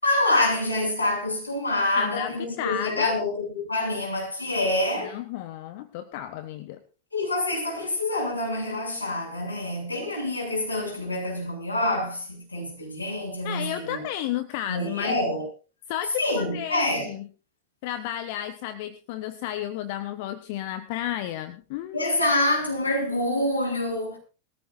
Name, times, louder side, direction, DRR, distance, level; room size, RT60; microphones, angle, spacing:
voice 1, 0.0-5.2 7.1-14.0 14.7-15.5 16.2-17.1 21.9-24.2, left 1 dB, 80° left, 7.4 m, -26 dB
voice 2, 1.9-3.1 5.0-6.8 13.4-15.2 15.9-17.3 17.8-22.1, left 12 dB, 50° left, 1.1 m, -32 dB
21.0 x 14.5 x 2.6 m
figure-of-eight pair, 90°, 0 cm